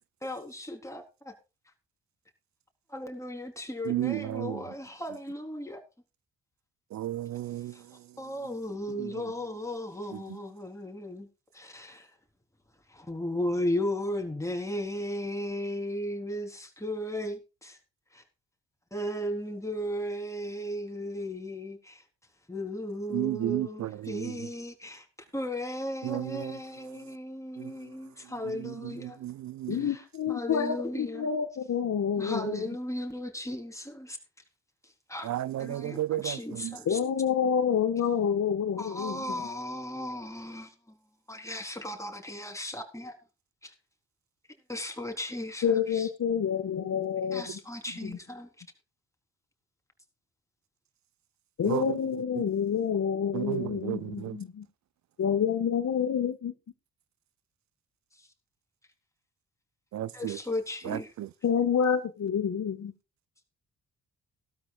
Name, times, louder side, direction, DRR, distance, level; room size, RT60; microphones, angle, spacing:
voice 1, 0.2-1.3 2.9-5.8 7.7-7.8 8.2-11.3 11.5-12.1 12.9-17.8 18.1-18.2 18.9-22.0 22.5-25.1 25.3-29.2 29.8-30.0 30.3-31.3 32.2-34.2 34.8-35.3 35.6-37.0 38.8-41.0 41.3-43.2 43.6-43.7 44.7-46.1 47.3-48.5 60.1-61.1, left 1 dB, 10° left, 3.9 m, -35 dB
voice 2, 3.9-4.5 7.0-7.7 23.1-23.7 29.2-29.3 29.6-29.7 35.3-36.2 51.7-51.8 53.3-54.0 54.2-54.4 59.9-60.1, right 13 dB, 55° right, 0.6 m, -31 dB
voice 3, 29.7-32.6 36.8-39.4 45.6-47.4 48.0-48.2 51.6-54.6 55.2-56.5 61.4-62.9, left 7 dB, 55° left, 1.7 m, -28 dB
16.5 x 13.0 x 2.5 m
hypercardioid pair, 45°, 33 cm